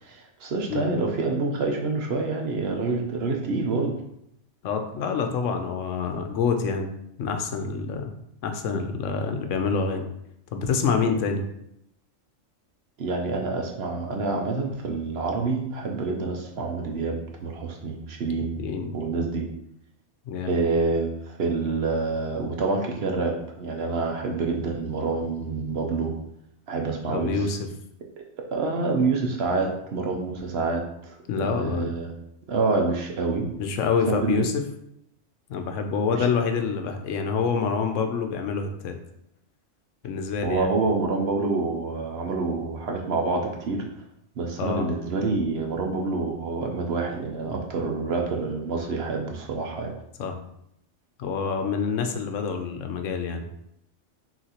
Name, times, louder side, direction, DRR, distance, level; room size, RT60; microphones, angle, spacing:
voice 1, 0.0-4.0 13.0-18.6 18.9-19.4 20.5-26.1 26.7-27.5 28.5-32.1 32.5-33.5 34.1-34.4 36.1-36.3 40.4-43.8 44.4-49.9, right 3 dB, 60° right, 2 dB, 0.8 m, -27 dB
voice 2, 4.6-6.9 7.2-8.1 8.4-10.1 10.5-11.5 18.6-19.0 20.3-20.5 27.1-27.7 31.3-31.9 33.6-34.6 35.5-39.0 40.0-40.7 44.6-44.9 50.2-50.4 51.2-53.5, left 5 dB, 75° left, 6 dB, 0.9 m, -27 dB
5.8 x 2.7 x 2.8 m, 0.77 s
omnidirectional pair, 1.3 m